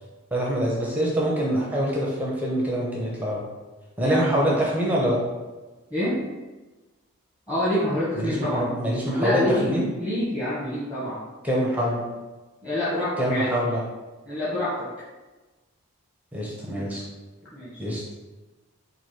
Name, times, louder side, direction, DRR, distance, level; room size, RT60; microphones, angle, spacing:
voice 1, 0.3-3.4 4.0-5.2 8.1-9.9 11.4-12.0 13.2-13.8 16.3-17.0 17.8-18.0, equal, 5° right, -4 dB, 0.6 m, -25 dB
voice 2, 4.0-4.6 5.9-6.2 7.5-8.7 9.2-11.2 12.6-13.5 14.2-14.9 17.5-17.8, left 1 dB, 20° left, -12 dB, 1.3 m, -27 dB
4.6 x 2.6 x 4.4 m, 1.2 s
head